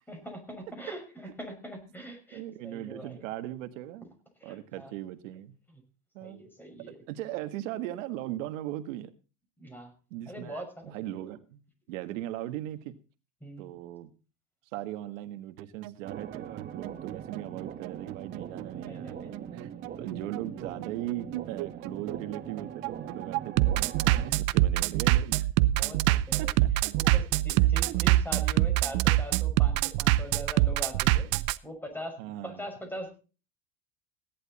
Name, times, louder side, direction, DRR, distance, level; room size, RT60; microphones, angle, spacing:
voice 1, 0.1-3.2 4.4-4.9 6.2-7.0 9.6-9.9 10.3-11.0 13.4-13.7 18.8-19.3 25.7-26.5 27.0-31.3 31.6-32.1 32.4-33.1, equal, 5° left, 5 dB, 5.9 m, -42 dB
voice 2, 2.3-4.0 4.4-5.6 6.1-6.4 6.8-9.1 10.1-11.6 11.9-13.0 13.6-14.1 14.7-19.7 20.0-23.7 24.2-25.5 26.4-26.5 26.8-27.2 27.9-28.0 32.2-32.7, right 14 dB, 90° right, 9 dB, 1.7 m, -38 dB
Bass drum, 15.6-31.6, right 16 dB, 65° right, 0.8 m, -25 dB
sound 1, 16.0-24.3, right 8 dB, 25° right, 1.4 m, -41 dB
16.5 x 11.0 x 4.2 m, 0.34 s
cardioid pair, 145°, 38 cm